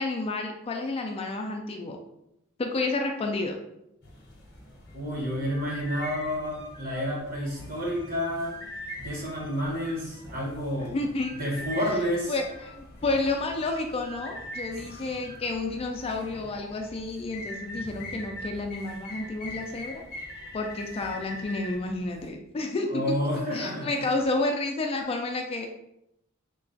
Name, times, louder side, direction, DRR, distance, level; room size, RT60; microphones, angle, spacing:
voice 1, 0.0-2.0 2.6-3.5 10.9-11.3 12.3-20.0 20.5-23.0 23.5-25.7, left 2 dB, 30° left, 3 dB, 0.3 m, -30 dB
sound 1, 4.0-22.3, left 1 dB, 50° left, 0.8 m, -42 dB
voice 2, 4.9-8.5 9.0-11.0 11.4-12.3 22.9-24.1, equal, 45° right, -4 dB, 1.3 m, -30 dB
3.2 x 2.3 x 3.8 m, 0.82 s
head